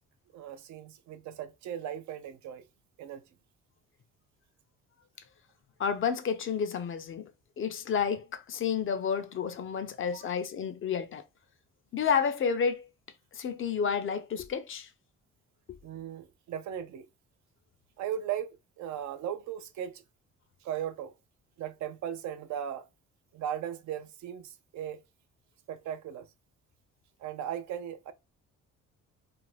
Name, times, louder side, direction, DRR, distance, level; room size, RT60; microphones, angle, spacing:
voice 1, 0.3-2.7 3.0-3.2 10.1-10.3 15.8-17.1 18.0-20.0 20.6-21.1 21.6-22.9 23.3-25.0 25.7-26.3 27.2-28.1, right 9 dB, 70° right, 0.5 m, -37 dB
voice 2, 5.8-7.3 7.6-11.2 11.9-12.9 13.3-14.9 15.7-15.8, left 6 dB, 45° left, 0.5 m, -30 dB
2.5 x 2.1 x 3.2 m
cardioid pair, 90°, 30 cm